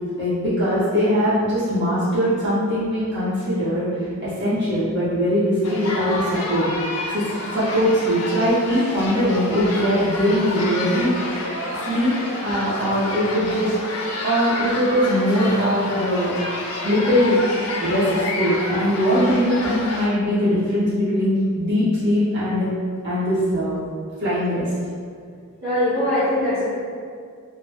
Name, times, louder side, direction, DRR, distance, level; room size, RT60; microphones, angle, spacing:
voice 1, 0.2-3.9 4.2-6.7 7.1-7.2 7.5-11.3 11.8-12.1 12.4-13.7 14.2-16.3 16.8-17.4 17.8-18.0 18.4-22.7 23.0-23.8 24.2-24.7, equal, 55° right, -13 dB, 1.5 m, -21 dB
sound 1, 5.6-20.1, left 2 dB, 75° left, 0.5 m, -29 dB
voice 2, 25.6-26.7, left 1 dB, 80° right, -13 dB, 1.1 m, -22 dB
3.2 x 2.2 x 2.8 m, 2.1 s
head